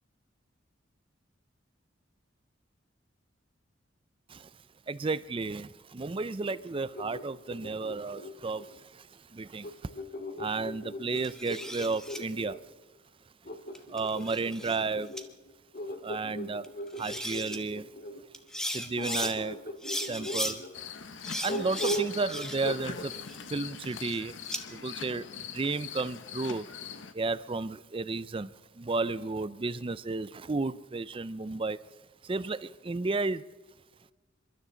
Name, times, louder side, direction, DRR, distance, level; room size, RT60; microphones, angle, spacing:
voice 1, 4.9-5.6 6.0-8.6 9.5-9.6 10.4-12.5 13.9-15.1 16.0-16.6 17.0-17.8 18.7-19.5 20.1-20.6 21.4-22.9 23.5-24.3 24.8-25.2 25.6-26.6 27.2-28.5 28.9-31.8 32.3-32.6 32.9-33.4, right 3 dB, 30° right, 0.5 m, -32 dB
sound 1, 6.4-8.8 9.6-12.6 13.5-18.2 19.0-20.7 21.5-22.2 22.6-23.1, equal, 50° left, 2.1 m, -39 dB
sound 2, 11.2-12.2 13.8-14.8 15.2-15.3 16.6-16.7 17.0-17.6 18.3-19.3 19.8-20.6 21.2-22.8 23.1-24.6, equal, 5° left, 1.1 m, -37 dB
sound 3, 20.7-27.1, left 7 dB, 75° left, 0.9 m, -42 dB
28.0 x 13.0 x 3.9 m
head